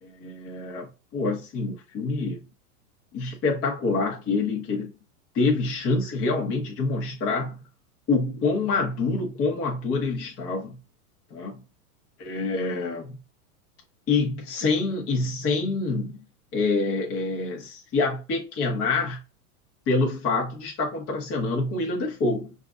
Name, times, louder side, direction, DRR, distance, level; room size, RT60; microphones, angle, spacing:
voice 1, 0.0-2.4 3.1-4.9 5.3-7.6 8.1-10.8 11.3-11.6 12.2-13.2 14.1-16.2 16.5-19.2 19.9-22.5, left 3 dB, 30° left, 1.1 m, -26 dB
5.3 x 2.5 x 2.4 m
hypercardioid pair, 125°, 45 cm